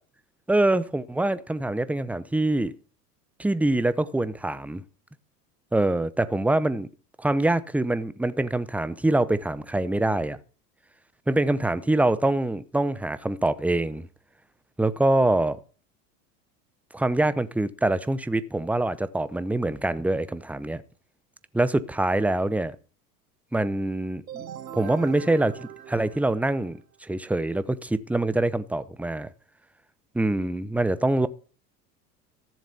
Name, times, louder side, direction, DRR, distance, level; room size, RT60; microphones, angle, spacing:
voice 1, 0.5-2.7 3.4-4.8 5.7-6.9 7.2-10.4 11.3-14.1 14.8-15.6 16.9-20.8 21.5-22.8 23.5-24.5 24.7-29.3 30.1-31.3, right 2 dB, 5° right, 0.7 m, -24 dB
sound 1, 24.3-26.9, right 10 dB, 85° right, 0.9 m, -41 dB
14.0 x 7.4 x 6.9 m
hypercardioid pair, 75°, 48 cm